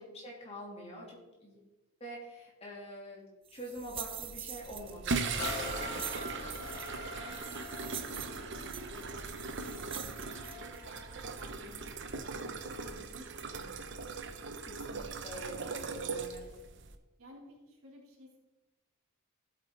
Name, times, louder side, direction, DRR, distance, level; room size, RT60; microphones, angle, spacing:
voice 1, 0.0-1.6 2.0-3.2 3.5-6.2 14.6-16.6, equal, 25° left, -3 dB, 3.2 m, -46 dB
sound 1, 3.5-10.9, right 9 dB, 25° right, 0.4 m, -45 dB
sound 2, 4.6-17.0, right 4 dB, 55° right, 0.8 m, -39 dB
sound 3, 5.4-13.0 13.6-13.7, left 1 dB, 45° left, 2.1 m, -44 dB
voice 2, 7.1-8.6 8.9-9.2 9.7-11.0 11.3-11.9 12.3-14.4 17.2-18.4, equal, 75° right, -3 dB, 3.4 m, -55 dB
15.5 x 8.4 x 4.0 m, 1.1 s
head